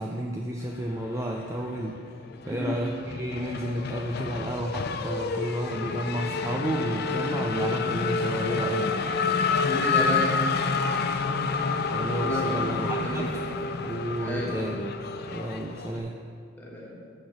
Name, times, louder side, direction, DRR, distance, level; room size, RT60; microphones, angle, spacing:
voice 1, 0.0-2.0 2.5-8.9 11.9-13.4 13.8-14.9 15.3-16.2, right 1 dB, 15° right, 1 dB, 0.4 m, -31 dB
Race car auto racing / Accelerating revving vroom, 1.0-2.0 2.3-16.0, left 4 dB, 50° left, 0.5 m, -29 dB
voice 2, 2.4-2.8 9.6-10.4 12.2-12.6 13.0-13.5 14.2-14.6 16.6-17.0, left 1 dB, 10° left, -4 dB, 1.5 m, -32 dB
6.6 x 6.3 x 6.4 m, 2.2 s
head